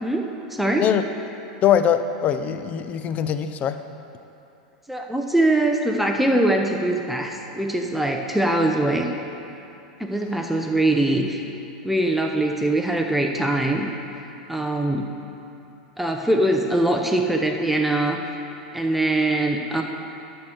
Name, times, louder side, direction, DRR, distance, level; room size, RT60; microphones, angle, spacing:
voice 1, 0.0-0.9 4.9-9.1 10.0-11.4 11.8-13.9 14.5-15.1 16.0-18.2 18.7-19.8, right 1 dB, 5° right, 2 dB, 0.7 m, -22 dB
voice 2, 1.6-3.8, left 9 dB, 40° left, 10 dB, 0.5 m, -22 dB
11.5 x 4.5 x 6.5 m, 2.9 s
hypercardioid pair, 105°, 4 cm